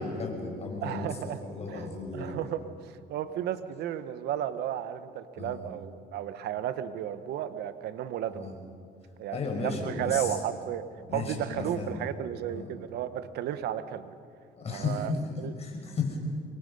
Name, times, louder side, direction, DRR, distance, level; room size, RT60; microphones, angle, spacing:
voice 1, 0.0-2.4 5.4-5.7 8.3-8.6 9.3-10.4 11.1-12.0 12.5-12.7 14.6-15.2 15.6-16.2, left 4 dB, 40° left, 1 dB, 5.4 m, -34 dB
voice 2, 0.8-1.9 2.1-2.6 3.1-8.5 9.2-10.8 11.1-14.1 14.7-15.1 15.4-15.5, right 11 dB, 75° right, 12 dB, 1.1 m, -33 dB
25.0 x 22.0 x 5.4 m, 2.3 s
cardioid pair, 110°, 17 cm